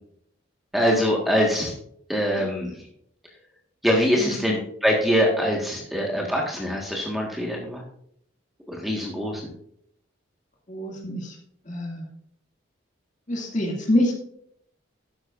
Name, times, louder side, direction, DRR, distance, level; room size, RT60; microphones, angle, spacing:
voice 1, 0.7-1.7 2.1-2.7 3.8-7.8 8.7-9.4, equal, ahead, -2 dB, 1.6 m, -23 dB
voice 2, 10.7-11.4 11.6-12.0 13.3-14.1, left 1 dB, 40° left, -1 dB, 2.4 m, -26 dB
12.5 x 9.6 x 2.6 m, 0.67 s
head